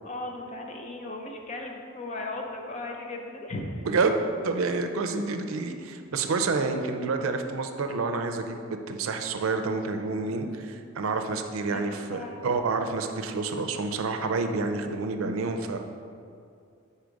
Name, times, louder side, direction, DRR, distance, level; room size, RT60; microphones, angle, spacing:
voice 1, 0.0-3.9 11.7-12.4, left 2 dB, 35° left, 2 dB, 0.6 m, -37 dB
voice 2, 3.9-15.8, right 3 dB, 85° right, 6 dB, 0.5 m, -28 dB
4.7 x 4.2 x 5.1 m, 2.4 s
head